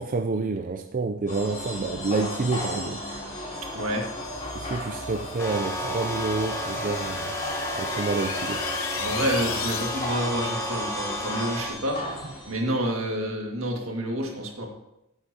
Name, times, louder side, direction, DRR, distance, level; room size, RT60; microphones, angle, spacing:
voice 1, 0.0-3.0 4.5-7.3 7.8-8.7, right 3 dB, 40° right, 0.4 m, -28 dB
sound 1, 1.3-12.6, left 1 dB, 35° left, 3.2 m, -35 dB
voice 2, 3.7-4.1 9.0-12.0 12.5-14.7, equal, 75° right, 2.0 m, -28 dB
sound 2, 4.4-10.4, left 9 dB, 70° left, 0.6 m, -37 dB
sound 3, 5.4-11.7, equal, 15° left, 1.2 m, -32 dB
14.0 x 7.9 x 2.8 m
head